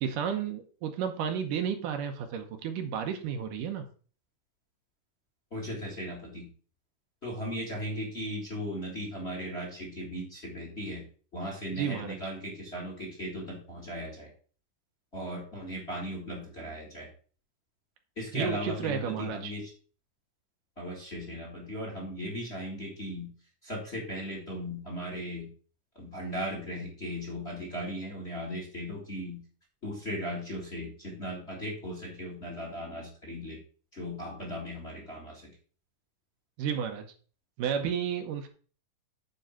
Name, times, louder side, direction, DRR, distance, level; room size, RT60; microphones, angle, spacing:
voice 1, 0.0-3.9 11.7-12.1 18.3-19.5 36.6-37.1 37.6-38.5, right 8 dB, 75° right, 6 dB, 2.5 m, -32 dB
voice 2, 5.5-6.5 7.2-11.1 11.3-14.3 15.1-17.1 18.2-19.7 20.8-23.3 23.6-25.5 26.0-29.4 29.8-33.6 33.9-35.5, equal, 25° left, 0 dB, 1.7 m, -37 dB
9.3 x 3.9 x 5.7 m, 0.40 s
omnidirectional pair, 3.8 m